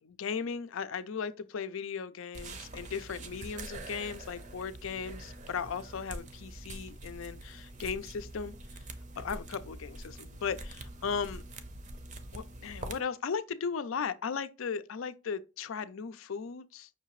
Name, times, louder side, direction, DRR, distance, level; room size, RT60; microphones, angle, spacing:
voice 1, 0.0-8.8 9.2-11.4 12.3-16.9, left 6 dB, 85° left, 0.5 m, -37 dB
sound 1, 2.3-13.0, right 2 dB, 35° right, 0.5 m, -45 dB
5.8 x 2.8 x 3.0 m
head